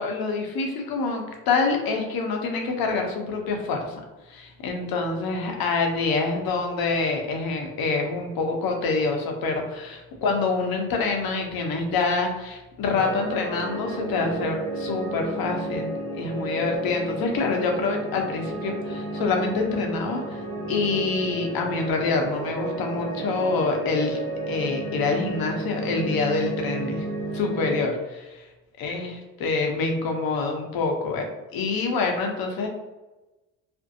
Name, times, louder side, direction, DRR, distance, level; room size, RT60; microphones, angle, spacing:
voice 1, 0.0-4.0 4.3-20.4 20.7-24.2 24.5-27.1 27.3-28.5 28.8-32.7, left 4 dB, 55° left, 2 dB, 0.8 m, -26 dB
sound 1, 12.9-27.8, right 2 dB, 90° left, 1.0 m, -32 dB
2.5 x 2.1 x 2.6 m, 1.1 s
hypercardioid pair, 60°, 42 cm